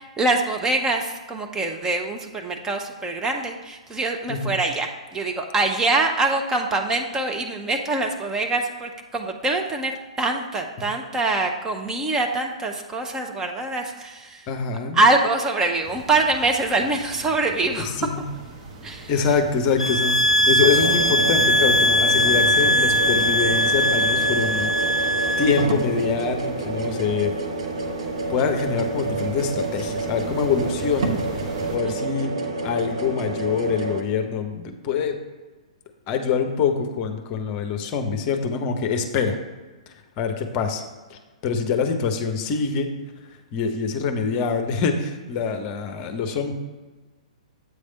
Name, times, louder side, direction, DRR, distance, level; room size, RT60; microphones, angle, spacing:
voice 1, 0.0-14.5 14.9-18.0 18.8-19.1 31.8-32.0, right 2 dB, 15° right, 3 dB, 0.6 m, -24 dB
voice 2, 4.3-4.6 14.5-15.0 17.8-18.3 19.1-20.2 20.5-24.7 25.4-27.3 28.3-31.2 31.7-32.3 32.6-35.1 36.1-39.4 39.9-40.8 41.1-42.9 43.5-46.5, left 5 dB, 30° left, 6 dB, 0.7 m, -25 dB
sound 1, 15.8-31.8, right 2 dB, 35° right, 1.1 m, -38 dB
sound 2, 19.8-25.6, left 1 dB, 85° left, 0.5 m, -20 dB
sound 3, 20.2-20.3 20.6-34.0, right 3 dB, 60° right, 0.9 m, -29 dB
8.1 x 3.3 x 5.2 m, 1.3 s
figure-of-eight pair, 115°, 4 cm